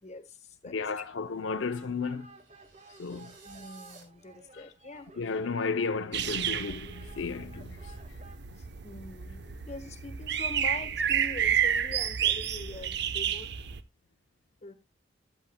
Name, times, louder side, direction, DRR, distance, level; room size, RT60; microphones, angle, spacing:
voice 1, 0.0-1.0 3.4-5.1 8.5-13.5 14.6-14.7, left 3 dB, 35° left, 1.3 m, -44 dB
voice 2, 0.7-2.3 3.0-3.3 4.5-4.7 5.2-7.9, left 4 dB, 75° left, 0.6 m, -33 dB
sound 1, 1.0-8.4, right 3 dB, 35° right, 1.1 m, -54 dB
sound 2, 2.0-4.0, right 4 dB, 75° right, 4.1 m, -57 dB
sound 3, 6.1-13.8, right 9 dB, 60° right, 0.8 m, -31 dB
14.0 x 9.2 x 2.2 m
head